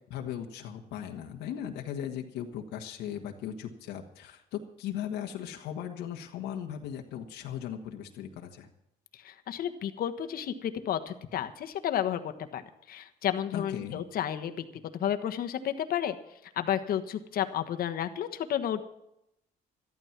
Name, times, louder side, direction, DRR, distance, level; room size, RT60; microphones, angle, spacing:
voice 1, 0.1-8.7 13.5-14.0, left 9 dB, 85° left, 2 dB, 1.6 m, -38 dB
voice 2, 9.1-12.6 12.9-14.6 14.9-16.1 16.6-18.8, left 10 dB, 60° left, 8 dB, 1.4 m, -31 dB
13.5 x 12.5 x 5.9 m, 0.80 s
cardioid pair, 110°, 17 cm